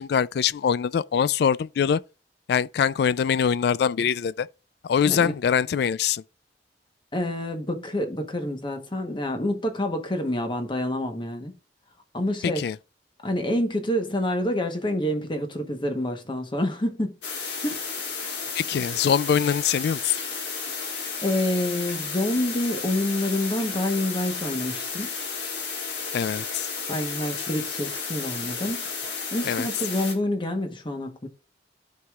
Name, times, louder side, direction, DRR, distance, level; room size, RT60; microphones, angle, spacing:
voice 1, 0.0-2.0 2.5-4.5 4.8-6.2 12.4-12.8 18.6-20.2 26.1-26.7 29.5-29.7, left 7 dB, 65° left, 0.3 m, -23 dB
voice 2, 7.1-11.5 12.1-12.7 13.2-17.1 17.6-17.9 21.2-25.1 26.9-28.9 29.3-31.3, left 1 dB, 25° left, 1.0 m, -27 dB
sound 1, 17.2-30.1, left 5 dB, 90° left, 1.8 m, -33 dB
13.5 x 4.8 x 2.4 m
head